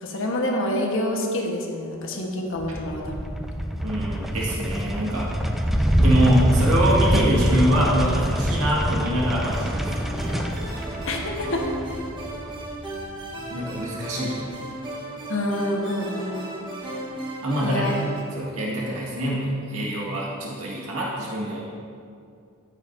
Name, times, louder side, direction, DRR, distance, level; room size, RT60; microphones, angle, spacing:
voice 1, 0.0-3.3 11.1-11.6 15.3-16.4 17.6-18.0, left 1 dB, 65° left, 0 dB, 1.2 m, -27 dB
sound 1, 2.6-13.2, equal, ahead, 0.4 m, -25 dB
voice 2, 3.8-5.3 6.0-9.9 13.4-14.5 17.4-17.9 18.3-21.6, right 1 dB, 85° right, -5 dB, 1.8 m, -24 dB
sound 2, 9.5-18.2, right 1 dB, 25° right, 1.2 m, -36 dB
15.5 x 6.2 x 2.7 m, 2.4 s
head